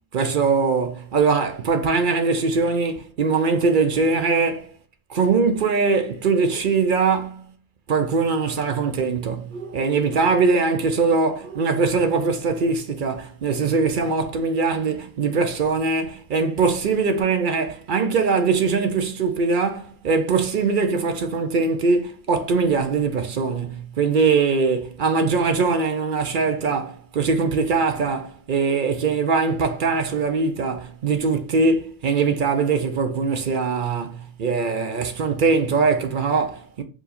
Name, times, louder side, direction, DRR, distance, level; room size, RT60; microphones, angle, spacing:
voice 1, 0.1-4.7 5.1-7.4 7.9-36.8, right 4 dB, 55° right, 0.7 m, -22 dB
4.8 x 2.6 x 4.0 m
omnidirectional pair, 1.1 m